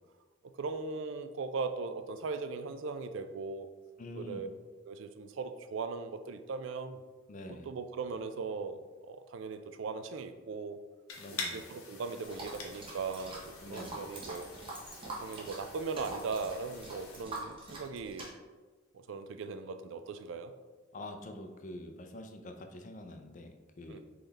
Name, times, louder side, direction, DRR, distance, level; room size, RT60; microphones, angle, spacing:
voice 1, 0.5-3.7 4.2-4.5 4.9-7.0 7.7-8.8 9.1-10.8 11.3-14.5 15.0-18.3 19.1-20.5 23.9-24.0, right 4 dB, 60° right, 9 dB, 0.3 m, -39 dB
voice 2, 4.0-4.4 7.3-7.7 11.2-11.6 13.6-14.1 20.9-24.0, left 1 dB, 35° left, 5 dB, 0.4 m, -46 dB
sound 1, 11.1-17.2, left 4 dB, 85° left, 0.9 m, -46 dB
sound 2, 12.2-18.3, right 2 dB, 25° right, 0.8 m, -45 dB
3.9 x 3.3 x 4.0 m, 1.3 s
head